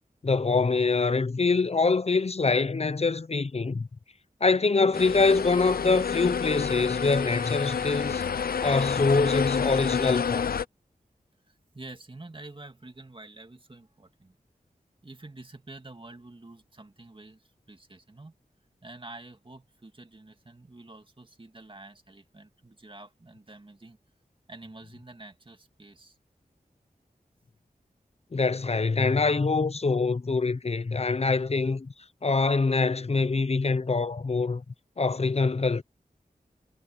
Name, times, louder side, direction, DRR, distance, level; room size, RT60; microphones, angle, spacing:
voice 1, 0.2-3.9 4.4-8.2 8.6-10.5 28.3-31.9 32.2-34.6 35.0-35.8, left 4 dB, 45° left, 0.7 m, -24 dB
sound 1, 4.9-10.6, left 6 dB, 80° left, 0.6 m, -29 dB
voice 2, 11.5-14.3 15.0-18.3 18.8-24.0 24.5-26.2, right 2 dB, 35° right, 2.4 m, -48 dB
wide cardioid pair, 65°, 15 cm